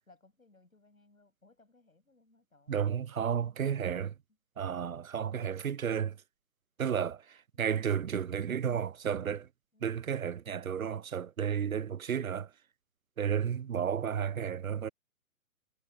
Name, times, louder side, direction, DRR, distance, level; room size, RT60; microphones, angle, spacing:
voice 1, 0.1-3.0 7.5-7.7 9.7-10.0 13.3-13.6, left 3 dB, 80° left, 7.1 m, -64 dB
voice 2, 2.7-4.1 4.6-6.2 6.8-9.5 9.8-12.5 13.2-14.9, right 8 dB, 80° right, 0.6 m, -32 dB
figure-of-eight pair, 125°, 41 cm